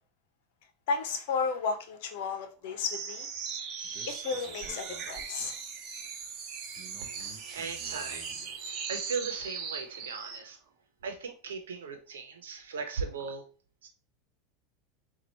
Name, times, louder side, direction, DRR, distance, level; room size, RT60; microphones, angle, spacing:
voice 1, 0.9-3.3 4.1-5.5, left 5 dB, 70° left, 0.9 m, -33 dB
sound 1, 2.9-10.5, right 6 dB, 50° right, 0.9 m, -39 dB
voice 2, 7.0-10.6 11.0-13.4 13.8-13.9, right 5 dB, 85° right, 1.0 m, -38 dB
4.4 x 2.6 x 4.0 m
hypercardioid pair, 90°, 0 cm